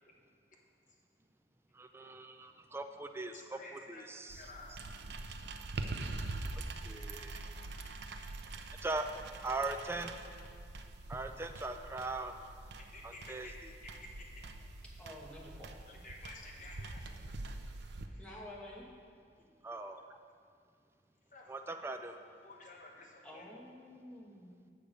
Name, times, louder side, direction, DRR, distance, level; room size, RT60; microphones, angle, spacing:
voice 1, 1.7-4.5 6.6-7.4 8.8-9.1 9.4-10.2 11.1-12.4 13.0-13.7 19.6-20.2 21.5-22.2, right 2 dB, 15° right, 6 dB, 0.3 m, -40 dB
voice 2, 3.3-4.0 4.3-4.8 12.8-13.5 13.8-13.9 14.2-14.3 15.9-17.3 21.3-21.4 22.4-23.4, left 2 dB, 45° left, -1 dB, 1.1 m, -52 dB
sound 1, 4.3-18.1, right 2 dB, 75° right, 0.5 m, -44 dB
voice 3, 15.0-15.7 18.2-18.9 23.2-24.5, left 1 dB, 5° left, -4 dB, 1.1 m, -50 dB
6.9 x 6.7 x 5.0 m, 2.2 s
head